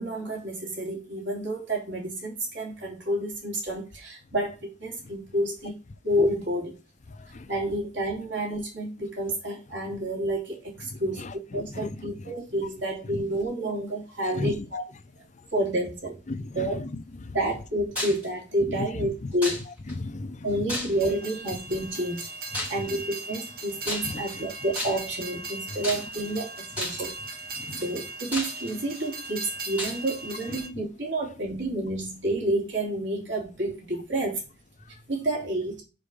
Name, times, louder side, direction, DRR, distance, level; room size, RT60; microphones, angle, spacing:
voice 1, 0.0-5.7 6.0-6.7 7.5-14.8 15.5-16.2 16.5-16.8 17.3-19.6 20.4-22.3 22.7-27.1 27.8-34.4 35.1-35.8, right 1 dB, 85° right, 3.0 m, -29 dB
voice 2, 7.1-7.5 10.9-12.3 13.0-13.2 14.3-14.7 16.3-17.4 18.7-19.1 19.9-20.6 22.5-22.9 24.0-24.5 27.6-27.8 30.7-30.8, left 2 dB, 40° left, 0.6 m, -36 dB
sound 1, 18.0-18.3 19.4-19.9 20.7-21.2 22.5-22.9 23.8-24.3 24.7-25.2 25.8-26.3 26.8-27.1 27.8-27.9 28.3-29.0 29.8-30.0, left 1 dB, 10° right, 3.7 m, -33 dB
Train, 20.9-30.7, right 3 dB, 55° right, 1.3 m, -38 dB
5.1 x 4.7 x 5.3 m
head